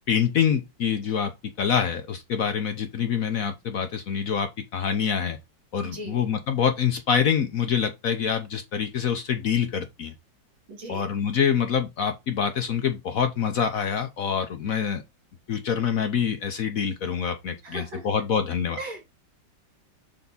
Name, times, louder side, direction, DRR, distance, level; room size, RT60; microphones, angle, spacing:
voice 1, 0.1-1.3 1.6-5.4 5.7-10.1 10.9-15.0 15.5-18.8, left 7 dB, 60° left, 0.9 m, -26 dB
voice 2, 5.8-6.2 10.7-11.0 17.6-18.1 18.8-19.1, right 2 dB, 85° right, 2.8 m, -38 dB
7.0 x 3.5 x 3.9 m
omnidirectional pair, 2.1 m